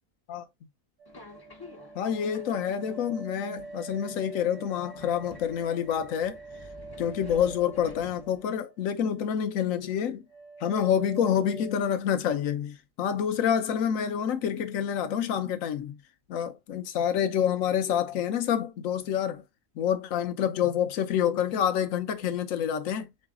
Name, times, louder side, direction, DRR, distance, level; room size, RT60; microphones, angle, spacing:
sound 1, 1.0-9.1 9.4-10.0 10.3-12.1, right 3 dB, 55° right, 1.1 m, -45 dB
Subway metro underground, 1.1-8.6, left 2 dB, 25° left, 0.5 m, -50 dB
voice 1, 1.9-6.4 7.0-10.2 10.6-16.0 16.3-19.4 19.8-23.1, left 9 dB, 65° left, 1.0 m, -27 dB
3.8 x 3.2 x 3.5 m
omnidirectional pair, 1.6 m